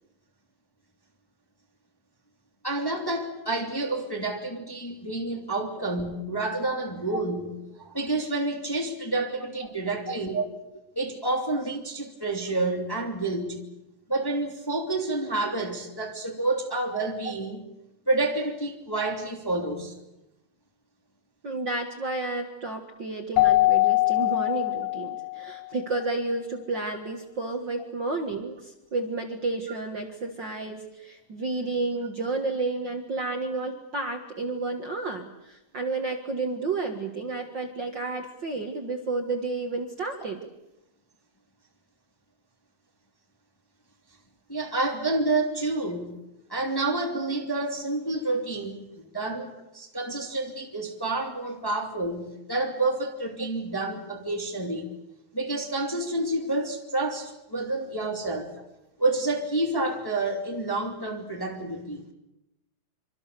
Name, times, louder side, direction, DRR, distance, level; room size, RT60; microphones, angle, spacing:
voice 1, 2.6-10.5 10.9-13.7 14.1-17.6 18.0-19.9 44.5-46.1 46.5-54.9 55.3-58.5 59.0-62.0, right 2 dB, 10° left, 1.7 m, -29 dB
voice 2, 21.4-40.5 51.7-51.8, right 3 dB, 65° right, 1.1 m, -31 dB
Keyboard (musical), 23.4-25.6, left 18 dB, 90° left, 3.4 m, -22 dB
26.0 x 25.5 x 6.9 m
omnidirectional pair, 4.9 m